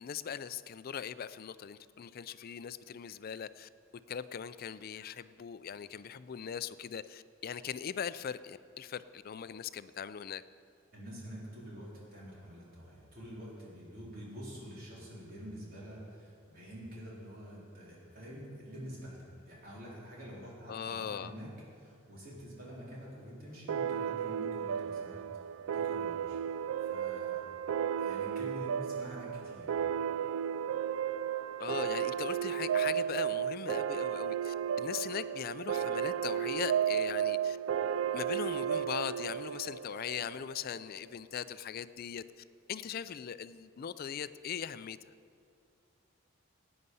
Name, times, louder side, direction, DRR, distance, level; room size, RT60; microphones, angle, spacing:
voice 1, 0.0-3.7 4.1-10.4 20.7-21.3 31.6-37.6 38.1-45.0, left 8 dB, 45° left, 14 dB, 0.4 m, -40 dB
voice 2, 10.9-25.2 25.7-27.4 28.0-29.8, equal, 45° right, -5 dB, 4.1 m, -47 dB
sound 1, 23.7-40.8, right 8 dB, 85° right, 0.3 m, -34 dB
16.5 x 9.6 x 5.5 m, 2.3 s
head